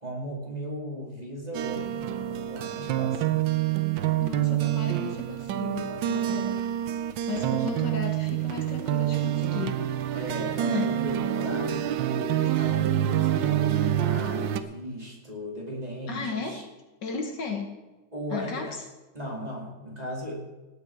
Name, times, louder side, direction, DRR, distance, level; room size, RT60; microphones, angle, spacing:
voice 1, 0.0-3.4 7.3-7.6 10.1-16.6 18.1-18.7 19.1-20.3, equal, 20° right, -2 dB, 2.6 m, -37 dB
sound 1, 1.5-14.6, right 11 dB, 70° right, 1.3 m, -27 dB
voice 2, 4.2-6.6 7.3-9.9 10.7-10.9 16.1-16.6 17.0-17.8 18.3-18.7, left 4 dB, 65° left, 4 dB, 2.0 m, -34 dB
18.0 x 8.7 x 4.6 m, 1.1 s
omnidirectional pair, 2.1 m